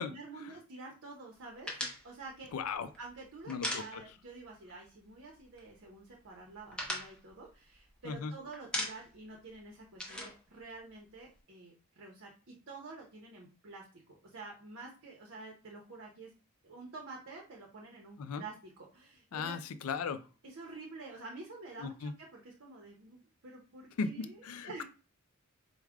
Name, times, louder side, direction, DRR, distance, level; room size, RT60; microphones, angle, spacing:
voice 1, 0.0-1.7 2.0-16.3 16.6-19.6 20.4-23.2 23.4-24.8, right 3 dB, 55° right, 0.7 m, -49 dB
sound 1, 1.7-4.4 4.7-4.9 5.2-5.9 6.2-8.2 8.5-9.3 9.5-11.4, left 1 dB, 5° left, 0.6 m, -40 dB
voice 2, 2.5-2.9 3.5-4.0 8.0-8.3 18.2-18.4 19.3-20.2 21.8-22.1 24.0-24.8, left 5 dB, 75° left, 0.4 m, -37 dB
4.7 x 2.1 x 3.5 m
head